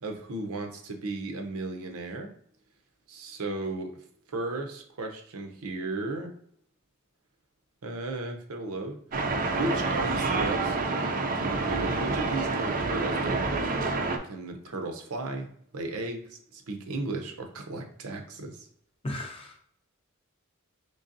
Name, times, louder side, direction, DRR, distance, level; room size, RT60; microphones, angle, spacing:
voice 1, 0.0-2.3 3.1-3.9 4.3-6.3 7.8-9.0 9.5-10.8 11.4-13.4 14.2-15.5 15.7-18.7, right 2 dB, 85° right, 4 dB, 0.7 m, -35 dB
sound 1, 9.1-14.2, right 3 dB, 40° right, 0.4 m, -28 dB
voice 2, 19.0-19.6, left 1 dB, 25° left, 1 dB, 0.7 m, -35 dB
3.8 x 3.3 x 2.6 m, 0.64 s
head